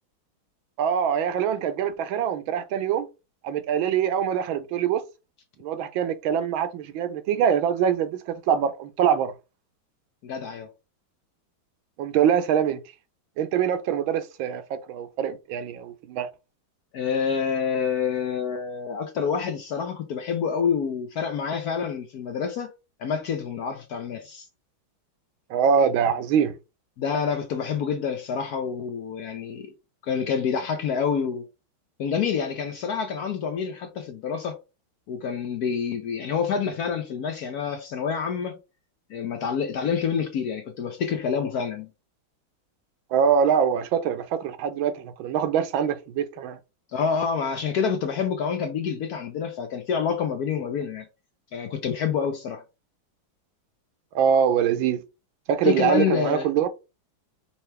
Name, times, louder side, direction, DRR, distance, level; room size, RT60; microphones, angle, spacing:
voice 1, 0.8-3.1 3.4-5.0 5.6-9.3 12.0-12.8 13.4-16.3 25.5-26.5 43.1-46.6 54.1-55.0 55.5-56.7, right 8 dB, 80° right, 1.5 m, -24 dB
voice 2, 10.2-10.7 16.9-22.7 23.0-24.5 27.0-29.7 30.0-31.5 32.0-34.6 35.1-38.6 39.1-41.9 46.9-51.1 51.5-52.6 55.6-56.5, left 6 dB, 70° left, 0.9 m, -27 dB
5.6 x 2.9 x 3.3 m
omnidirectional pair, 2.2 m